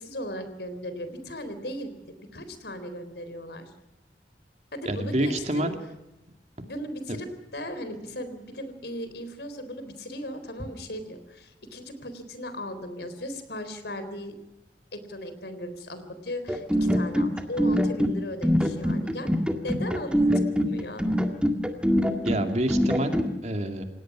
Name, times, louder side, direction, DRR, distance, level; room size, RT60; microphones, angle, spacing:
voice 1, 0.0-3.7 4.7-5.7 6.6-7.3 7.5-14.3 14.9-19.3 19.6-21.0, left 1 dB, 70° left, 11 dB, 4.0 m, -37 dB
voice 2, 4.9-5.7 22.2-23.8, right 1 dB, 40° right, 5 dB, 2.5 m, -27 dB
sound 1, 16.5-23.3, equal, 5° right, 1.9 m, -24 dB
29.0 x 17.5 x 6.1 m, 0.95 s
head